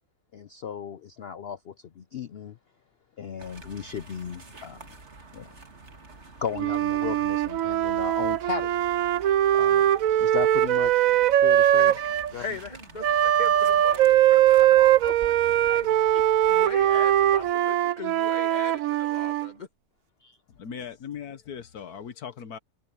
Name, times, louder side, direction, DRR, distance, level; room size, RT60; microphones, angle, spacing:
voice 1, 0.3-2.6 3.2-4.9 5.3-5.5 6.4-8.7 9.5-9.8 10.2-11.1 11.4-12.4 20.2-20.4, left 7 dB, 60° left, 0.7 m, -35 dB
sound 1, 3.4-17.5, right 3 dB, 45° right, 2.5 m, -48 dB
Wind instrument woodwind instrument, 6.5-12.3 13.0-19.5, right 12 dB, 70° right, 1.0 m, -21 dB
voice 2, 12.4-19.7, left 3 dB, 30° left, 2.4 m, -40 dB
voice 3, 20.6-22.6, left 7 dB, 80° left, 1.7 m, -38 dB
omnidirectional pair, 1.6 m